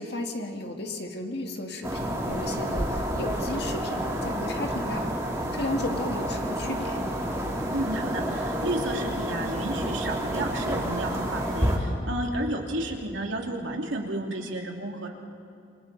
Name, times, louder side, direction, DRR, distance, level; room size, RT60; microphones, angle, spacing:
voice 1, 0.0-5.2 5.5-7.0, left 1 dB, 60° left, 3 dB, 2.1 m, -34 dB
sound 1, 1.8-11.8, equal, 15° right, 2.6 m, -29 dB
voice 2, 7.7-15.1, right 1 dB, 85° right, 1 dB, 2.7 m, -32 dB
27.5 x 25.0 x 4.2 m, 2.6 s
head